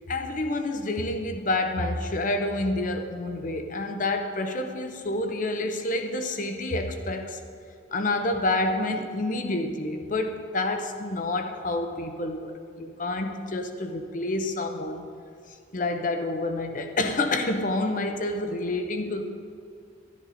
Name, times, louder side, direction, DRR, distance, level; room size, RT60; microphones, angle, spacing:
voice 1, 0.1-7.4 7.9-15.0 15.7-19.2, left 2 dB, 40° left, 6 dB, 0.7 m, -28 dB
12.0 x 10.5 x 4.2 m, 2.4 s
head